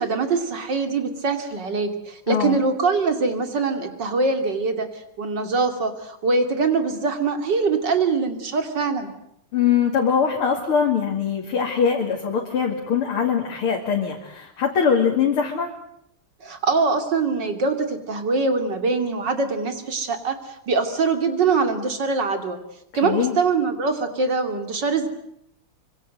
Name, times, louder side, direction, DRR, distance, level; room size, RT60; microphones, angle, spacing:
voice 1, 0.0-4.9 5.2-9.1 16.4-20.4 20.7-22.6 22.9-25.1, right 4 dB, 50° right, 7 dB, 3.3 m, -23 dB
voice 2, 2.3-2.6 9.5-15.7 23.0-23.4, left 7 dB, 75° left, 0 dB, 3.4 m, -22 dB
25.0 x 24.5 x 7.9 m, 0.75 s
omnidirectional pair, 2.4 m